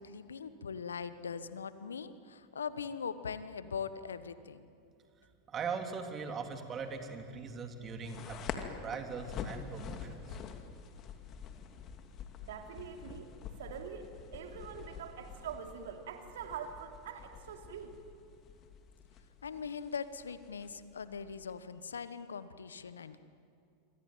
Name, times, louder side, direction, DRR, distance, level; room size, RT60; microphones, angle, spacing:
voice 1, 0.0-4.6 19.4-23.2, left 6 dB, 80° left, 13 dB, 1.2 m, -41 dB
voice 2, 5.5-8.4 8.8-10.4, right 5 dB, 30° right, 5 dB, 3.5 m, -40 dB
sound 1, 8.0-21.5, left 7 dB, 40° left, 2.7 m, -47 dB
voice 3, 12.4-13.3 13.6-18.0, right 7 dB, 70° right, 4 dB, 3.1 m, -44 dB
27.0 x 24.0 x 9.1 m, 2.5 s
figure-of-eight pair, 85°, 0 cm